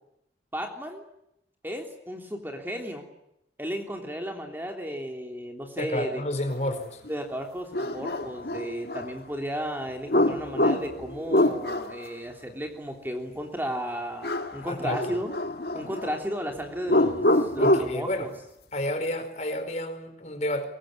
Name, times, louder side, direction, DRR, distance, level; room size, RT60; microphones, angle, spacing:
voice 1, 0.5-1.1 1.6-3.1 3.6-6.2 7.1-15.3 15.7-18.3, equal, 10° right, 2 dB, 3.2 m, -34 dB
voice 2, 5.8-7.0 14.7-15.2 15.7-15.8 17.6-18.3 18.7-20.6, left 1 dB, 40° left, 8 dB, 4.7 m, -30 dB
sound 1, 7.1-7.2 7.7-9.1 10.1-12.1 14.2-14.7 14.9-16.1 16.8-18.0, left 1 dB, 65° left, 1.8 m, -25 dB
24.0 x 23.0 x 9.7 m, 0.81 s
head